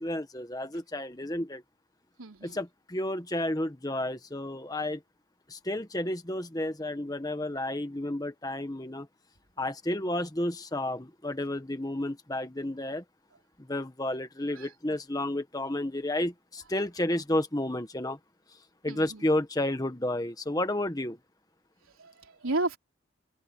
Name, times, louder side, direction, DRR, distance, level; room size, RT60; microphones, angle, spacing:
voice 1, 0.0-1.6 2.4-5.0 5.5-9.1 9.6-13.0 13.6-18.2 18.8-21.2, left 1 dB, 20° left, 1.3 m, -31 dB
voice 2, 2.2-2.6 14.5-14.7 18.9-19.3 22.0-22.8, right 2 dB, 90° right, 3.5 m, -33 dB
head